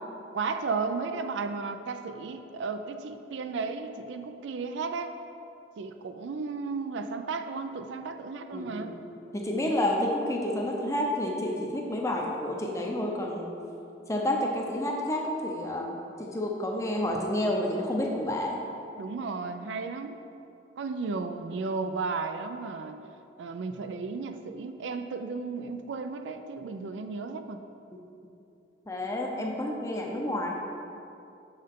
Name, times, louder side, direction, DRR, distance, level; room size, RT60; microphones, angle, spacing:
voice 1, 0.3-5.1 5.8-9.0 19.0-20.2 20.8-23.0 23.4-27.6, right 4 dB, 80° right, 8 dB, 0.4 m, -34 dB
voice 2, 8.5-9.0 9.3-13.5 14.1-18.6 28.9-30.6, left 1 dB, 15° left, 0 dB, 0.6 m, -30 dB
6.6 x 5.6 x 3.6 m, 2.8 s
head